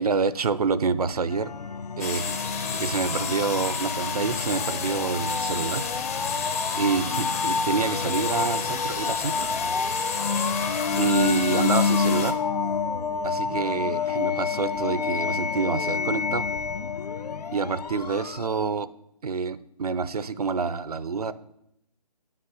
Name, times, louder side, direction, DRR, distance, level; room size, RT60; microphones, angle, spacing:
voice 1, 0.0-1.5 2.0-2.4 2.8-5.8 6.8-9.5 11.0-12.4 13.2-16.5 17.5-18.9 19.2-21.3, right 5 dB, 65° right, 15 dB, 0.7 m, -27 dB
sound 1, 1.3-18.8, left 5 dB, 70° left, 0.6 m, -28 dB
sound 2, 2.0-12.3, left 5 dB, 20° left, 0.7 m, -32 dB
9.5 x 5.9 x 7.7 m, 0.79 s
figure-of-eight pair, 160°, 21 cm